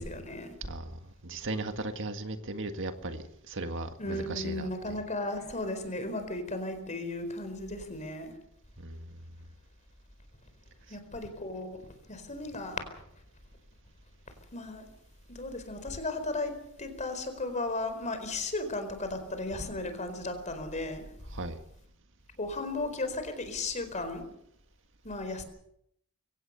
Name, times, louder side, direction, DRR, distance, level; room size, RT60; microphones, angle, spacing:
voice 1, 0.0-0.5 4.0-8.3 10.9-11.8 12.1-12.8 14.5-14.9 15.3-21.1 22.4-24.2 25.0-25.4, left 2 dB, 35° left, 8 dB, 4.4 m, -35 dB
voice 2, 0.6-5.0 8.8-9.1 10.9-11.0 21.3-21.6, right 2 dB, 60° right, 7 dB, 1.8 m, -37 dB
23.0 x 17.5 x 6.9 m, 0.73 s
head